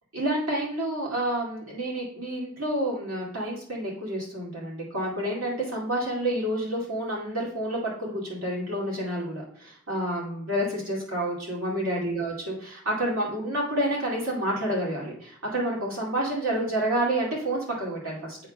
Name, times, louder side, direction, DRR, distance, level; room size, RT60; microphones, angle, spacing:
voice 1, 0.1-18.4, right 1 dB, 85° right, -4 dB, 2.3 m, -29 dB
8.5 x 6.2 x 2.2 m, 0.63 s
head